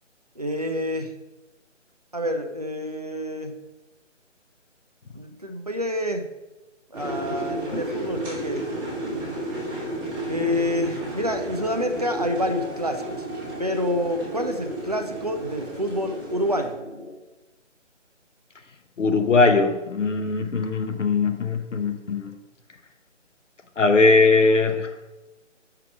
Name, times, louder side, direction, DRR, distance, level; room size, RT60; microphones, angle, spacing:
voice 1, 0.4-1.1 2.1-3.5 5.1-6.3 6.9-8.6 10.3-13.3 13.6-16.7, equal, 35° right, 5 dB, 0.4 m, -28 dB
sound 1, 6.9-16.7, right 1 dB, 15° right, 1.9 m, -33 dB
sound 2, 11.5-17.1, equal, 60° left, 2.3 m, -42 dB
voice 2, 19.0-22.4 23.8-24.9, left 3 dB, 75° left, 8 dB, 0.7 m, -20 dB
5.9 x 4.8 x 4.5 m, 1.1 s
figure-of-eight pair, 155°, 37 cm